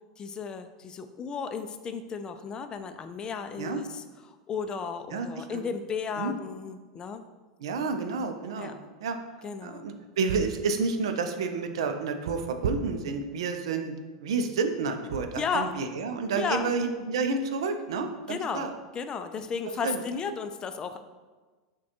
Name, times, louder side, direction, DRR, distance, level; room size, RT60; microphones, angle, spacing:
voice 1, 0.2-7.2 8.5-8.7 9.4-9.8 15.3-15.7 16.4-16.7 18.3-18.7 18.9-21.0, left 6 dB, 30° left, 8 dB, 0.3 m, -34 dB
voice 2, 5.1-5.6 6.2-6.3 7.6-8.7 9.0-9.2 9.6-13.9 14.2-18.7 19.8-20.0, right 4 dB, 75° right, 7 dB, 0.4 m, -30 dB
6.1 x 2.2 x 2.9 m, 1.3 s
hypercardioid pair, 95°, 3 cm